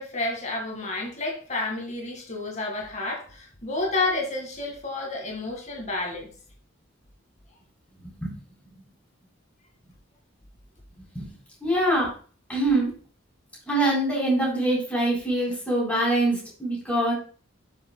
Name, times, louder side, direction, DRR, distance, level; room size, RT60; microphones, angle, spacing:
voice 1, 0.0-6.3, left 2 dB, 35° left, 0 dB, 2.0 m, -30 dB
voice 2, 11.0-11.3 11.6-12.1 12.5-12.9 13.7-17.1, right 1 dB, 5° left, -5 dB, 3.8 m, -24 dB
12.5 x 6.2 x 2.3 m, 0.40 s
head